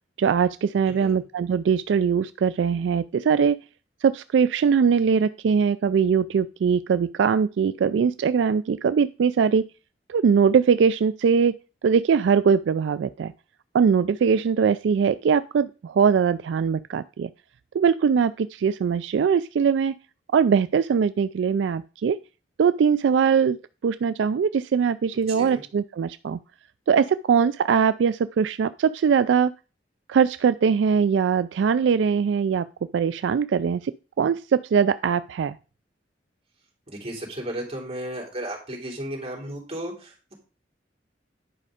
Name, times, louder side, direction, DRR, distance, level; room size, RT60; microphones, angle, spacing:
voice 1, 0.2-3.6 4.0-9.6 10.1-11.5 11.8-13.3 13.7-17.3 17.7-20.0 20.3-22.2 22.6-23.6 23.8-26.4 26.9-29.5 30.1-32.7 32.9-33.9 34.2-35.6, right 6 dB, 75° right, 14 dB, 0.3 m, -21 dB
voice 2, 0.9-1.2 25.3-25.6 36.9-40.3, right 1 dB, 35° right, -1 dB, 3.3 m, -34 dB
10.0 x 5.3 x 4.9 m, 0.34 s
head